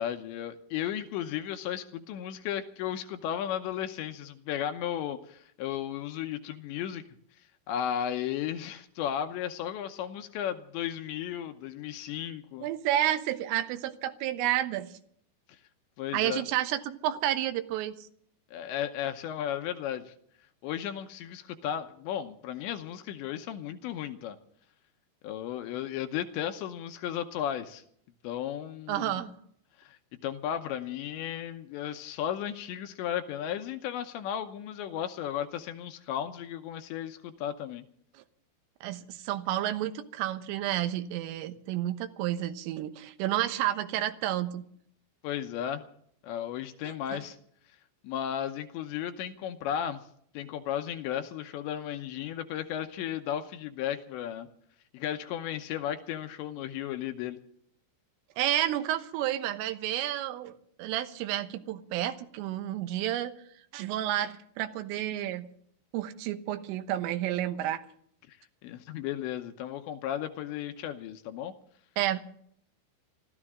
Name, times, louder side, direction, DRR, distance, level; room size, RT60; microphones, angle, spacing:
voice 1, 0.0-7.0 7.7-12.7 16.0-16.4 18.5-20.1 20.6-24.4 25.2-27.8 28.2-29.1 29.8-37.8 45.2-45.9 46.2-47.4 48.0-50.0 50.3-54.5 54.9-57.4 68.3-68.4 68.6-71.5, left 10 dB, 75° left, 8 dB, 2.9 m, -34 dB
voice 2, 12.6-15.0 16.1-18.1 28.9-29.3 38.2-38.3 38.8-44.6 46.8-47.2 58.4-63.3 63.7-65.5 65.9-67.8 72.0-72.2, right 12 dB, 90° right, 10 dB, 3.7 m, -31 dB
26.0 x 13.0 x 3.7 m, 0.64 s
omnidirectional pair, 5.7 m